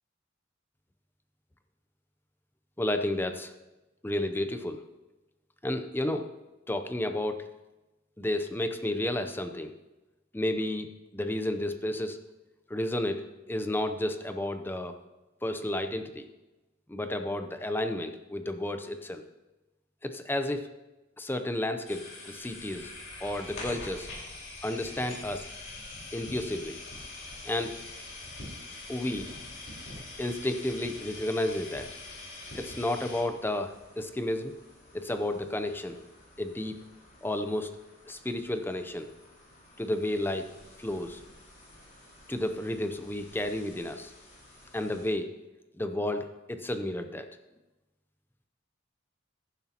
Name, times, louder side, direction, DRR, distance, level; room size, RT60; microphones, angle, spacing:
voice 1, 2.8-3.5 4.0-4.8 5.6-6.3 6.7-7.5 8.2-9.7 10.3-12.2 12.7-14.9 15.4-16.3 16.9-19.2 20.0-20.7 21.2-22.9 23.2-24.1 24.6-25.5 26.1-26.8 27.4-27.8 28.9-29.3 30.2-31.9 32.5-34.5 34.9-36.0 36.4-36.8 37.2-37.8 38.1-39.1 39.8-40.5 40.8-41.2 42.3-44.1 44.7-45.3 45.8-47.3, left 1 dB, 10° left, 8 dB, 0.6 m, -32 dB
sound 1, 21.9-33.2, left 2 dB, 70° left, 4.4 m, -43 dB
sound 2, 26.8-45.1, left 1 dB, 35° left, 4.8 m, -56 dB
15.0 x 11.0 x 2.9 m, 1.1 s
head